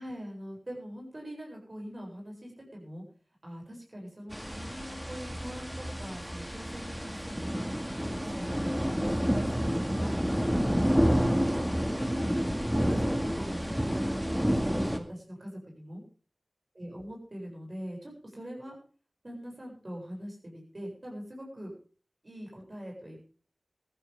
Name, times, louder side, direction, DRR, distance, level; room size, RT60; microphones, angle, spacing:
voice 1, 0.0-3.0 3.4-7.5 8.0-12.3 12.8-16.0 16.8-18.8 19.2-21.7 22.2-23.2, equal, 45° right, 0 dB, 7.5 m, -43 dB
sound 1, 4.3-15.0, equal, 5° right, 2.1 m, -29 dB
17.0 x 14.5 x 3.7 m, 0.40 s
wide cardioid pair, 55°, 0 cm